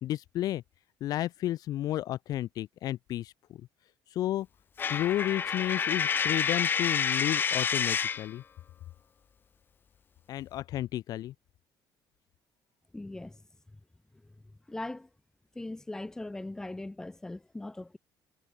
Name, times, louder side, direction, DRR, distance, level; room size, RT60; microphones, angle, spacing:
voice 1, 0.0-0.6 1.0-3.7 4.1-4.5 4.9-8.4 10.3-11.3, left 13 dB, 55° left, 1.0 m, -32 dB
Coin (dropping), 4.8-8.3, left 7 dB, 25° left, 1.0 m, -28 dB
voice 2, 12.9-13.4 14.7-15.1 15.5-18.0, left 2 dB, 5° left, 3.1 m, -39 dB
cardioid pair, 180°, 8 cm